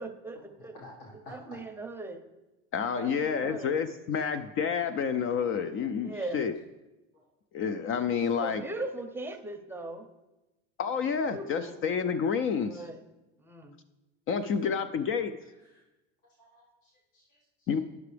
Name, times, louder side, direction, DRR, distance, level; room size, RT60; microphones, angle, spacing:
voice 1, 0.0-0.7 1.3-2.2 3.0-3.8 6.0-6.4 8.3-10.1 11.3-11.8 12.6-13.0 13.4-13.8 14.3-15.0, right 2 dB, 5° right, 5 dB, 0.7 m, -40 dB
voice 2, 0.6-1.3 4.1-4.2 7.1-7.2 8.1-8.3 15.6-15.8 16.4-17.7, left 2 dB, 60° left, -4 dB, 1.7 m, -53 dB
voice 3, 2.7-6.5 7.5-8.6 10.8-12.9 14.3-15.3 17.7-17.8, left 6 dB, 40° left, 11 dB, 0.4 m, -29 dB
10.5 x 5.9 x 3.3 m, 1.0 s
supercardioid pair, 105°, 33 cm